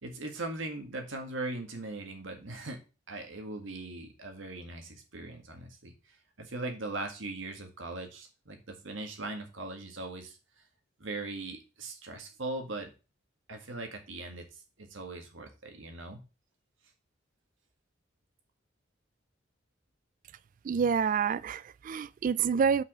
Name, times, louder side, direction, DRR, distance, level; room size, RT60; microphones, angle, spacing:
voice 1, 0.0-2.8 3.1-10.6 11.0-12.9 13.5-16.2, right 2 dB, 85° right, 1.8 m, -40 dB
voice 2, 20.6-22.8, right 6 dB, 45° right, 0.3 m, -28 dB
5.6 x 4.8 x 6.1 m
head